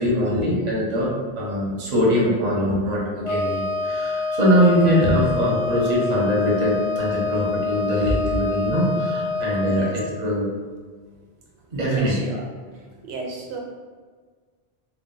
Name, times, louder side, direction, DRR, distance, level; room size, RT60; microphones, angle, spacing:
voice 1, 0.0-10.5 11.7-12.2, equal, 45° right, -4 dB, 0.8 m, -22 dB
Wind instrument woodwind instrument, 3.2-10.0, left 3 dB, 50° left, 0.5 m, -26 dB
voice 2, 9.4-10.0 11.9-12.4 12.7-13.6, right 3 dB, 90° right, -1 dB, 0.8 m, -34 dB
2.3 x 2.2 x 3.7 m, 1.5 s
omnidirectional pair, 1.1 m